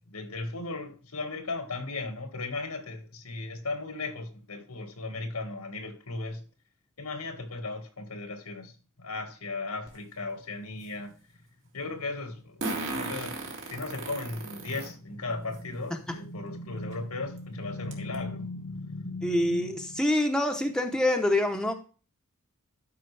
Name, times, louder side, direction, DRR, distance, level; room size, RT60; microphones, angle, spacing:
voice 1, 0.1-6.4 7.0-11.1 11.7-13.4 13.7-20.0, left 3 dB, 85° left, 1.8 m, -36 dB
Fart, 9.9-10.0 12.6-14.9 15.5-15.6 16.9-17.0 17.4-17.5 17.9-18.1, right 2 dB, 60° right, 2.2 m, -35 dB
voice 2, 19.2-21.7, left 1 dB, 5° left, 0.8 m, -26 dB
12.0 x 5.2 x 3.3 m
head